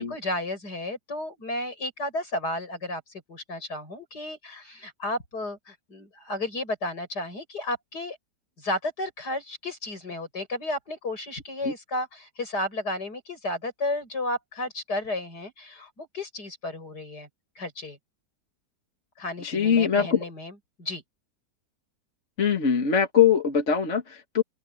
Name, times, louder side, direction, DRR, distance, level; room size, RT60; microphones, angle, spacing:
voice 1, 0.0-8.2 8.6-17.3 17.6-18.0 19.2-21.0, left 1 dB, 70° left, 8.6 m, -33 dB
voice 2, 19.4-20.2 22.4-24.4, left 7 dB, 45° left, 1.9 m, -22 dB
open air
omnidirectional pair, 1.8 m